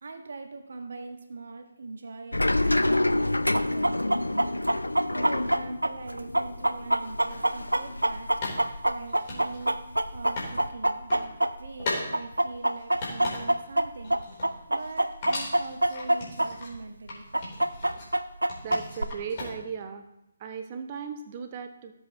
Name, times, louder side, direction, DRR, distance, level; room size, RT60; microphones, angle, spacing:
voice 1, 0.0-4.5 5.1-8.3 8.9-9.8 10.1-14.4 14.7-17.2, right 3 dB, 50° right, 5 dB, 1.4 m, -42 dB
sound 1, 2.3-9.0 9.3-10.7, left 1 dB, 75° left, 0.4 m, -29 dB
Chicken rooster, 3.5-11.8 12.1-16.5 16.7-16.8 17.3-19.0, right 1 dB, 80° right, 0.6 m, -25 dB
sound 2, 7.3-7.4 8.4-10.5 10.9-11.3 11.8-12.1 12.5-13.7 14.0-15.0 15.2-16.7 17.1-18.1 18.5-19.8, left 2 dB, 30° left, 3.6 m, -37 dB
voice 2, 18.6-20.1 20.4-21.9, right 6 dB, 30° right, 7 dB, 0.9 m, -37 dB
16.5 x 7.8 x 3.0 m, 0.84 s
figure-of-eight pair, 145°, 0 cm